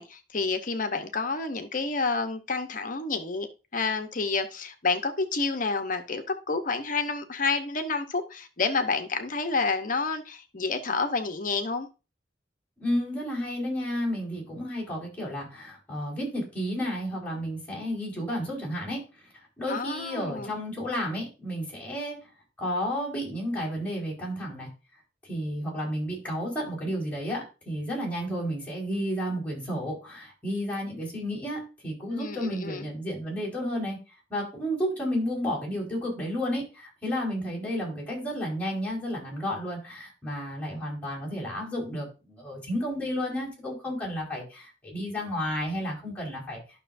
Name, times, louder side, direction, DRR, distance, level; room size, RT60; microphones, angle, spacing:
voice 1, 0.0-3.5 3.7-11.9 19.7-20.5 32.1-32.9, left 4 dB, 50° left, 1.0 m, -29 dB
voice 2, 12.8-19.0 19.6-22.2 22.6-24.7 25.2-34.0 34.3-46.6, equal, 10° left, 4.7 m, -32 dB
11.5 x 6.2 x 2.6 m
head